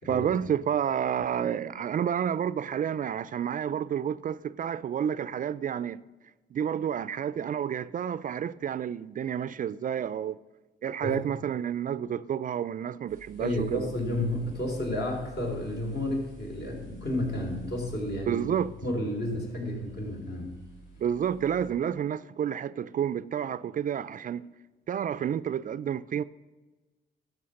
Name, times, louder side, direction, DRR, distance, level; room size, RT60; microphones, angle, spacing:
voice 1, 0.0-6.0 6.5-10.4 10.8-13.9 18.3-18.7 21.0-24.5 24.9-26.2, right 9 dB, 45° right, 0.4 m, -30 dB
sound 1, 13.1-21.7, equal, 85° left, 3.9 m, -50 dB
voice 2, 13.4-18.4 18.8-20.6, left 1 dB, 55° left, 4.0 m, -31 dB
12.5 x 7.0 x 6.4 m
cardioid pair, 90°, 20 cm